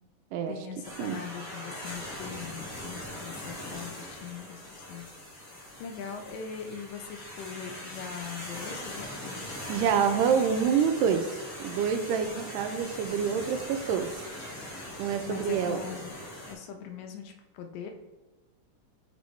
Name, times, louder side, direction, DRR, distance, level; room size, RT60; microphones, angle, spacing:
voice 1, 0.5-5.1 5.8-9.4 15.2-16.2 16.5-17.9, left 7 dB, 80° left, 5 dB, 2.1 m, -41 dB
sound 1, 0.8-16.5, left 1 dB, 40° left, 1.3 m, -41 dB
voice 2, 9.7-11.3 11.6-14.1 15.0-15.8, right 7 dB, 80° right, 7 dB, 2.1 m, -27 dB
8.1 x 4.1 x 3.1 m, 1.2 s
omnidirectional pair, 4.0 m